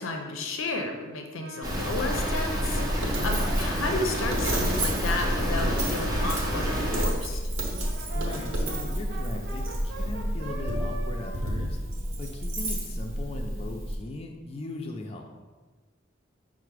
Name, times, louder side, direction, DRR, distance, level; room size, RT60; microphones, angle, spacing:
voice 1, 0.0-7.4, left 2 dB, 80° left, 3 dB, 0.5 m, -32 dB
Brass instrument, 1.4-7.1 7.7-12.5, right 2 dB, 55° right, 0.7 m, -43 dB
sound 1, 1.6-7.0, equal, 20° right, 0.6 m, -30 dB
Coin (dropping), 1.7-14.0, right 1 dB, 80° right, 0.9 m, -30 dB
voice 2, 3.1-3.5 8.1-11.8 12.2-15.3, left 2 dB, 30° left, 2 dB, 0.3 m, -39 dB
5.7 x 2.0 x 4.6 m, 1.3 s
head